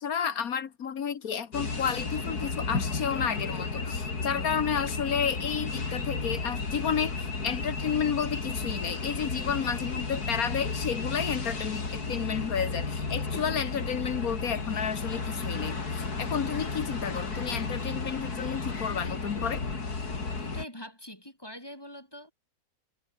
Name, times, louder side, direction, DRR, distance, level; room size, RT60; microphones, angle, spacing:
voice 1, 0.0-19.6, left 7 dB, 70° left, 1.7 m, -31 dB
sound 1, 1.5-20.7, left 4 dB, 90° left, 3.9 m, -33 dB
voice 2, 20.4-22.3, equal, 15° left, 5.7 m, -44 dB
omnidirectional pair, 1.6 m